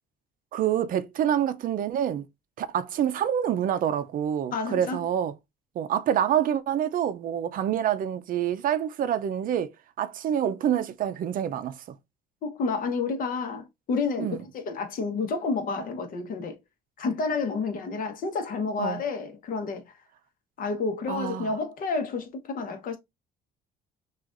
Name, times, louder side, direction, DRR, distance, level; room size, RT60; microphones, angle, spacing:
voice 1, 0.5-2.2 2.6-5.3 5.8-9.7 10.0-11.8 14.2-14.4 18.8-19.0 21.1-21.5, right 10 dB, 55° right, 0.5 m, -27 dB
voice 2, 4.5-5.0 12.4-16.6 17.0-19.8 20.6-23.0, left 4 dB, 55° left, 1.0 m, -30 dB
5.9 x 2.5 x 2.5 m
cardioid pair, 110°, 17 cm